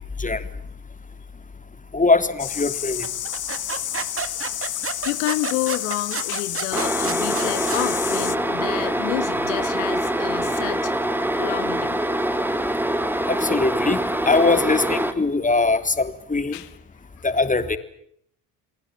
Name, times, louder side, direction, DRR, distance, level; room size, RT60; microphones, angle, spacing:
voice 1, 1.9-3.1 13.3-16.6 17.2-17.8, left 3 dB, 20° left, 10 dB, 3.4 m, -21 dB
sound 1, 2.4-8.4, left 10 dB, 45° left, 1.3 m, -30 dB
sound 2, 3.0-7.9, right 6 dB, 30° right, 2.1 m, -31 dB
voice 2, 5.0-10.9 11.4-12.0 16.5-16.7 17.2-17.3, left 17 dB, 85° left, 13 dB, 1.7 m, -29 dB
sound 3, 6.7-15.1, right 1 dB, 5° right, 3.2 m, -24 dB
30.0 x 20.0 x 8.8 m, 0.70 s
hypercardioid pair, 70°, 43 cm